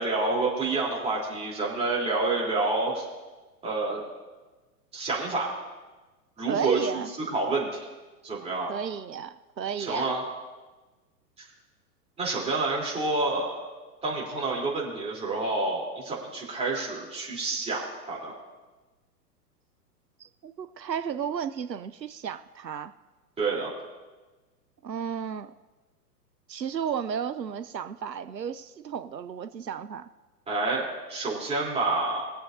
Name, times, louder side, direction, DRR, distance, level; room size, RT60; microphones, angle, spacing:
voice 1, 0.0-3.0 3.6-4.0 4.9-5.5 6.4-7.0 7.3-7.9 8.2-8.7 9.8-10.2 12.2-13.6 14.0-18.3 23.4-23.7 30.5-32.3, right 3 dB, 10° right, -4 dB, 3.7 m, -28 dB
voice 2, 6.5-7.1 8.7-10.1 20.2-22.9 24.8-25.5 26.5-30.1, right 7 dB, 90° right, 11 dB, 0.7 m, -33 dB
22.5 x 7.8 x 2.8 m, 1.2 s
figure-of-eight pair, 110°, 49 cm